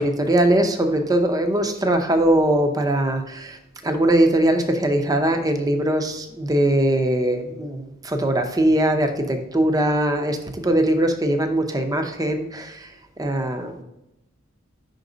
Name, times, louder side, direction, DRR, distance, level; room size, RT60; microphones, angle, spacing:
voice 1, 0.0-13.8, right 1 dB, 15° right, 5 dB, 0.6 m, -21 dB
5.7 x 3.9 x 5.0 m, 0.89 s
head